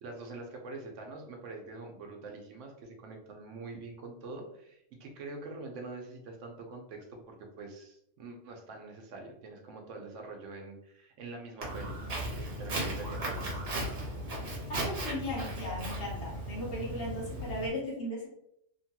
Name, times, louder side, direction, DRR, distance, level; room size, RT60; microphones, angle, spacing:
voice 1, 0.0-14.0, right 3 dB, 85° right, 2 dB, 1.0 m, -45 dB
Walk footsteps, 11.6-17.7, right 1 dB, 60° right, 1.1 m, -36 dB
voice 2, 14.7-18.3, equal, 55° left, -3 dB, 1.0 m, -37 dB
3.0 x 2.2 x 2.8 m, 0.74 s
omnidirectional pair, 1.3 m